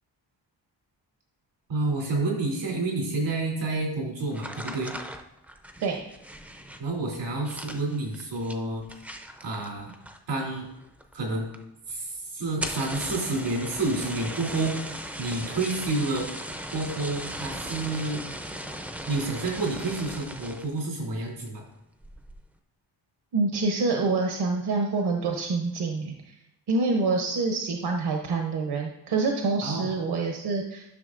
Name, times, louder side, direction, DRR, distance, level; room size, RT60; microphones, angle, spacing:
voice 1, 1.7-4.9 6.8-8.8 9.4-9.9 10.3-10.7 11.1-11.5 11.9-16.3 16.7-18.2 19.1-21.6 29.6-29.9, right 2 dB, 90° right, -2 dB, 3.0 m, -29 dB
sound 1, 4.3-10.4 10.7-11.2 11.5-11.6 11.9-12.0 12.5-20.8 21.2-21.6 22.0-22.4, equal, 5° right, 0.4 m, -38 dB
voice 2, 23.3-26.3 26.7-30.8, right 3 dB, 65° right, 2 dB, 0.9 m, -26 dB
10.5 x 6.0 x 2.5 m, 0.88 s
wide cardioid pair, 130°, 43 cm